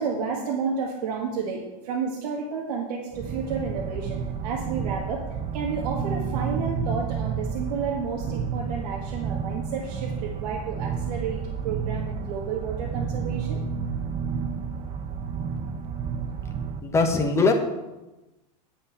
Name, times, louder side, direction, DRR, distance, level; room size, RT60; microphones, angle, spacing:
voice 1, 0.0-4.2 4.4-5.2 5.5-11.4 11.6-13.6, right 5 dB, 75° right, -3 dB, 2.0 m, -31 dB
sound 1, 3.1-16.8, right 6 dB, 30° right, 0.8 m, -31 dB
voice 2, 16.8-17.5, left 3 dB, 15° left, 2 dB, 1.3 m, -21 dB
10.5 x 5.2 x 7.8 m, 1.0 s
supercardioid pair, 145°, 21 cm